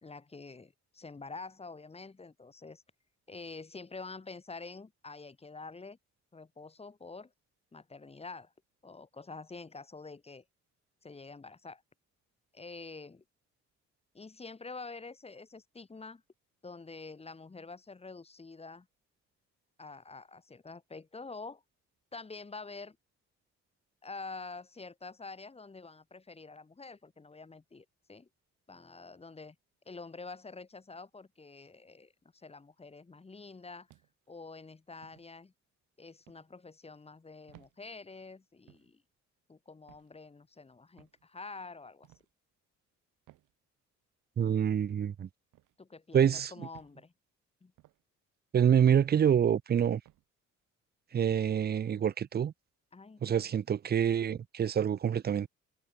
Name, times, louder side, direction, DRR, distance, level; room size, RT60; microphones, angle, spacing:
voice 1, 0.0-2.8 3.3-6.0 6.3-7.3 7.7-8.5 8.8-10.4 11.0-11.8 12.5-13.2 14.1-16.2 16.6-18.9 19.8-21.6 22.1-23.0 24.0-28.3 28.7-29.6 29.8-33.9 34.3-35.5 36.0-39.0 39.5-42.1 45.8-47.1 47.6-47.7 52.9-53.6, left 3 dB, 20° left, 1.3 m, -47 dB
sound 1, 33.9-34.3 35.0-35.3 36.3-36.5 37.5-37.8 38.7-38.9 39.9-40.1 41.0-41.2 42.0-42.3 43.3-43.5 44.4-44.6 45.5-45.8 46.7-47.0 47.8-48.0 48.9-49.2 50.1-50.3, right 16 dB, 85° right, 1.7 m, -60 dB
voice 2, 44.4-45.3 46.1-46.7 48.5-50.0 51.1-52.5 53.2-55.5, right 8 dB, 35° right, 0.5 m, -27 dB
cardioid pair, 90°, 30 cm